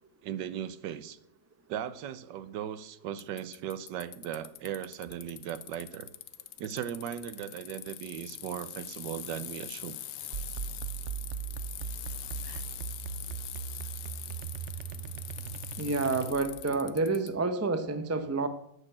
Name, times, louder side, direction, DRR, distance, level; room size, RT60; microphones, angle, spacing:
voice 1, 0.2-1.2 1.7-6.1 6.6-9.9 12.4-12.6, right 10 dB, 80° right, 14 dB, 1.4 m, -38 dB
Bicycle, 3.2-17.3, left 12 dB, 85° left, 1.4 m, -43 dB
sound 1, 10.3-16.7, right 8 dB, 65° right, 0.7 m, -39 dB
voice 2, 15.8-18.5, right 3 dB, 20° right, 9 dB, 0.3 m, -29 dB
9.9 x 6.6 x 8.7 m, 0.71 s
omnidirectional pair, 1.9 m